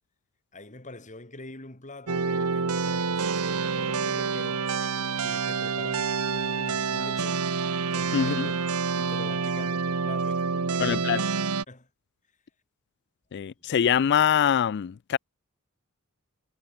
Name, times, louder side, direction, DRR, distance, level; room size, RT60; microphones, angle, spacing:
voice 1, 0.5-4.7 5.2-7.6 7.9-8.7 8.9-11.9, left 2 dB, 35° left, 3.3 m, -45 dB
sound 1, 2.1-11.6, right 5 dB, 85° right, 1.1 m, -28 dB
voice 2, 8.1-8.5 10.8-11.2 13.3-15.2, left 8 dB, 50° left, 0.4 m, -24 dB
head